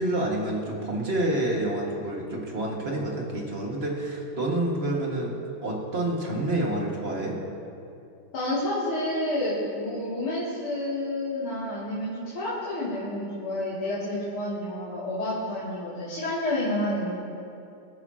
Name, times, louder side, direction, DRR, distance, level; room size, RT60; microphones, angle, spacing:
voice 1, 0.0-5.3 5.6-7.4, right 1 dB, 30° right, -2 dB, 1.9 m, -28 dB
voice 2, 8.3-17.1, left 1 dB, 70° left, -10 dB, 3.5 m, -29 dB
25.0 x 9.8 x 2.9 m, 2.6 s
omnidirectional pair, 2.4 m